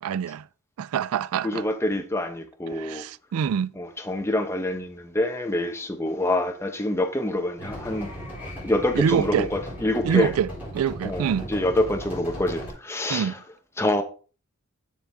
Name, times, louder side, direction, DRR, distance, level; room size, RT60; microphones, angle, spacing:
voice 1, 0.0-0.4 0.8-1.6 2.8-3.7 8.9-9.5 10.0-10.5 10.7-11.4 13.1-13.4, right 7 dB, 85° right, 0.3 m, -25 dB
voice 2, 1.4-3.0 3.8-8.1 8.6-10.3 11.0-13.4 13.8-14.0, left 1 dB, 10° left, 0.8 m, -26 dB
sound 1, 7.6-12.7, equal, 10° right, 4.1 m, -37 dB
7.4 x 7.0 x 3.5 m
head